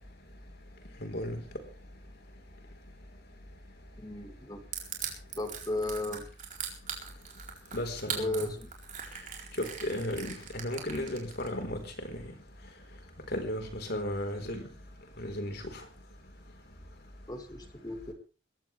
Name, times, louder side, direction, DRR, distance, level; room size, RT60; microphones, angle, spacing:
voice 1, 1.0-1.4 7.7-8.4 9.8-11.8 13.3-14.6 15.2-15.6, left 1 dB, 55° left, 5 dB, 4.2 m, -34 dB
voice 2, 4.0-4.6 5.4-6.3 8.2-8.7 17.3-18.1, left 2 dB, 20° left, 6 dB, 2.5 m, -35 dB
Crushing, 4.7-11.5, right 8 dB, 40° right, 4.3 m, -39 dB
20.0 x 15.5 x 3.4 m, 0.35 s
head